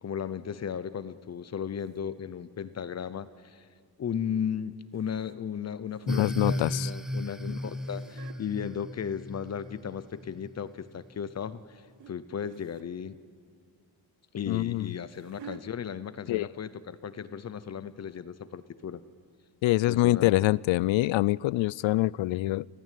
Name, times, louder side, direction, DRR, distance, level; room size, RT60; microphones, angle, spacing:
voice 1, 0.0-3.6 4.0-13.2 14.3-19.0 19.9-20.3, left 8 dB, 35° left, 15 dB, 0.7 m, -35 dB
sound 1, 1.8-2.0 4.9-5.4 5.7-6.9 7.5-8.4 9.4-10.2 10.7-11.0 12.0-12.1 12.4-12.9 14.4-15.6 16.5-16.7 17.0-17.1 17.6-17.7, right 8 dB, 65° right, 1.2 m, -51 dB
voice 2, 6.1-6.9 14.5-14.9 16.3-16.5 19.6-22.7, left 17 dB, 80° left, 23 dB, 0.5 m, -25 dB
sound 2, 6.1-10.6, equal, ahead, 0.6 m, -35 dB
27.5 x 15.5 x 9.2 m, 2.1 s
wide cardioid pair, 175°, 45 cm